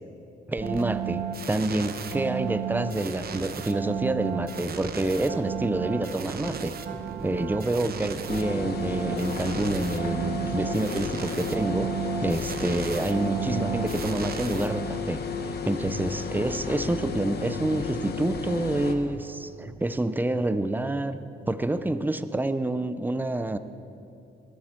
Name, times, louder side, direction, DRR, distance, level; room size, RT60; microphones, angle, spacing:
voice 1, 0.5-6.7 7.2-11.9 12.2-21.2 21.5-23.6, right 2 dB, 10° right, 12 dB, 0.6 m, -28 dB
sound 1, 0.6-15.2, right 8 dB, 50° right, 1.0 m, -34 dB
sound 2, 8.3-18.9, left 5 dB, 55° left, 1.4 m, -33 dB
20.0 x 12.0 x 4.5 m, 2.6 s
cardioid pair, 90°, 20 cm